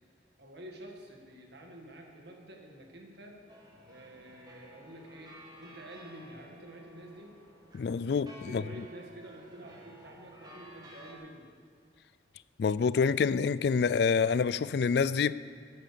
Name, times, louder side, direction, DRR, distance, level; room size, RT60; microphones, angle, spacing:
voice 1, 0.4-3.4 3.9-7.4 8.5-11.5, right 1 dB, 60° right, 1 dB, 1.9 m, -49 dB
sound 1, 3.5-11.1, equal, 20° right, 1.6 m, -54 dB
voice 2, 7.7-8.6 12.6-15.3, left 5 dB, 60° left, 17 dB, 0.3 m, -27 dB
13.5 x 9.5 x 6.9 m, 2.1 s
head